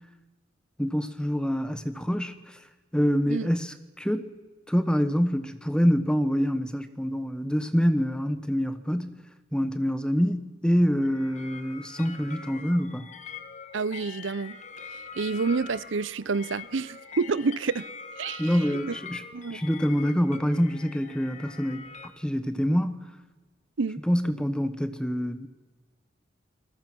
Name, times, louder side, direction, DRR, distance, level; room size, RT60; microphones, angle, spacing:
voice 1, 0.8-2.6 2.9-4.3 4.7-9.2 9.5-13.1 18.4-19.2 19.5-23.1 24.1-25.5, equal, 5° left, 1.2 m, -26 dB
sound 1, 11.0-22.1, left 5 dB, 40° left, 1.6 m, -44 dB
voice 2, 13.7-14.6 14.9-17.9 18.2-18.6 19.3-19.6 23.8-24.0, right 4 dB, 90° right, 0.7 m, -29 dB
28.5 x 20.0 x 6.2 m
head